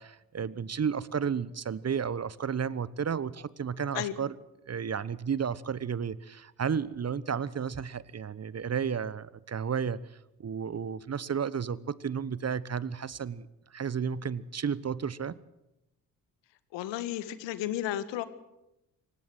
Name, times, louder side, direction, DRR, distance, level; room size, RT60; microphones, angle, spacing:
voice 1, 0.0-4.3 4.7-10.0 10.4-15.4, right 7 dB, 35° right, 19 dB, 1.1 m, -32 dB
voice 2, 16.7-18.2, left 13 dB, 70° left, 14 dB, 1.7 m, -33 dB
26.5 x 15.5 x 7.9 m, 0.91 s
hypercardioid pair, 45°, 45 cm